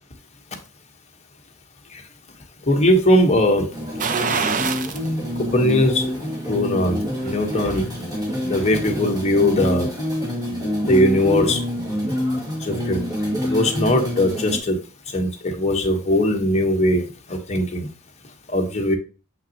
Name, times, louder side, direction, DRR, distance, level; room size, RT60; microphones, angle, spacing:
voice 1, 2.7-3.7 5.4-6.1 6.5-7.9 8.4-9.9 10.8-11.7 12.6-13.0 13.4-14.8 15.1-17.9 18.5-19.0, left 1 dB, 30° left, 3 dB, 1.2 m, -20 dB
sound 1, 3.7-14.6, left 1 dB, 20° right, 1.9 m, -27 dB
sound 2, 4.0-5.1 5.5-5.6 7.1-7.9 8.2-8.3, right 5 dB, 40° right, 0.6 m, -25 dB
6.2 x 5.8 x 2.9 m, 0.33 s
head